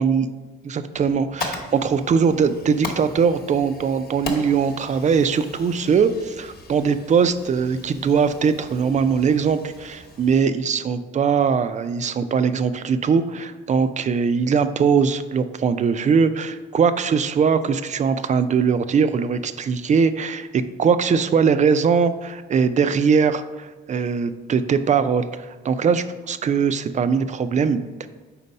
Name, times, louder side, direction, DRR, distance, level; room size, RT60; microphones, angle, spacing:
voice 1, 0.7-28.1, right 6 dB, 40° right, 11 dB, 0.4 m, -21 dB
Fire, 0.9-10.4, left 3 dB, 50° left, 1.0 m, -38 dB
4.4 x 4.1 x 5.3 m, 1.3 s
cardioid pair, 90°, 20 cm